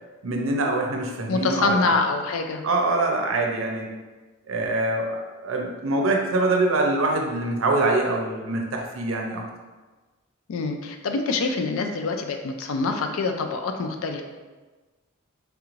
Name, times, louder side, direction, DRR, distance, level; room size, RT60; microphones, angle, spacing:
voice 1, 0.2-1.8 2.6-3.9 4.5-9.4, right 2 dB, 75° right, 2 dB, 0.5 m, -24 dB
voice 2, 1.3-2.6 10.5-14.2, left 3 dB, 85° left, 5 dB, 0.4 m, -25 dB
3.3 x 3.1 x 2.4 m, 1.3 s
head